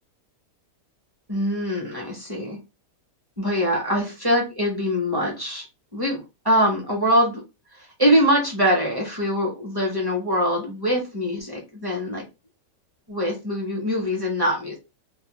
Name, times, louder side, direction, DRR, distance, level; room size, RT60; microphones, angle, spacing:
voice 1, 1.3-2.6 3.4-5.6 5.9-7.4 7.7-12.2 13.1-14.8, equal, 25° right, -2 dB, 0.5 m, -23 dB
2.8 x 2.1 x 2.9 m, 0.26 s
omnidirectional pair, 1.8 m